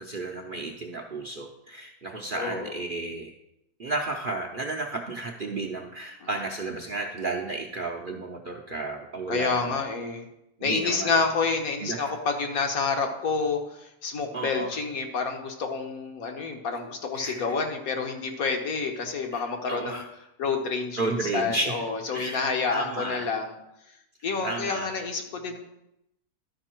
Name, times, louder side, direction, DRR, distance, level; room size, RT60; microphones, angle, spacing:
voice 1, 0.0-3.3 3.8-9.8 10.6-11.2 11.8-12.1 14.3-14.7 17.1-17.5 19.3-20.1 21.0-21.9 22.1-23.3 24.4-24.9, right 2 dB, 50° right, 2 dB, 0.7 m, -33 dB
voice 2, 2.4-2.7 6.2-6.3 9.3-10.3 10.6-20.0 20.4-23.6 24.2-25.6, left 4 dB, 70° left, 4 dB, 1.5 m, -28 dB
11.5 x 5.3 x 4.4 m, 0.85 s
omnidirectional pair, 1.6 m